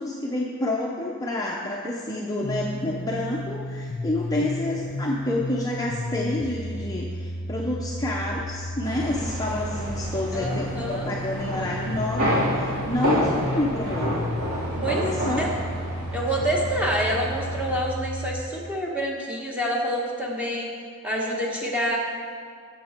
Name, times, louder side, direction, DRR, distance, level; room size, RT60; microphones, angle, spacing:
voice 1, 0.0-14.3 14.9-15.5, left 1 dB, 15° left, -3 dB, 0.7 m, -29 dB
sound 1, 2.4-18.4, left 1 dB, 50° left, 0.8 m, -33 dB
sound 2, 8.8-17.8, equal, 90° right, 3.0 m, -29 dB
voice 2, 10.3-11.1 14.8-15.5 16.1-20.7 21.0-22.0, equal, 5° right, -3 dB, 1.5 m, -27 dB
12.0 x 7.7 x 4.4 m, 2.1 s
head